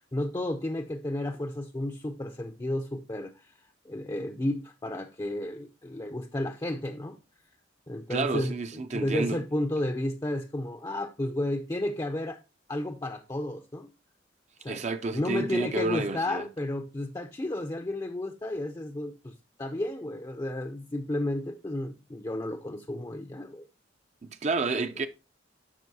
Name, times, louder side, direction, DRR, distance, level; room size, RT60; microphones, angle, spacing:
voice 1, 0.0-3.3 3.9-7.2 7.9-8.5 8.9-12.4 12.7-13.9 14.6-14.8 15.1-23.7, left 1 dB, 20° left, 0.5 m, -32 dB
voice 2, 8.1-9.4 14.7-16.5 24.3-25.1, right 3 dB, 35° right, 0.5 m, -30 dB
12.0 x 5.2 x 2.7 m
head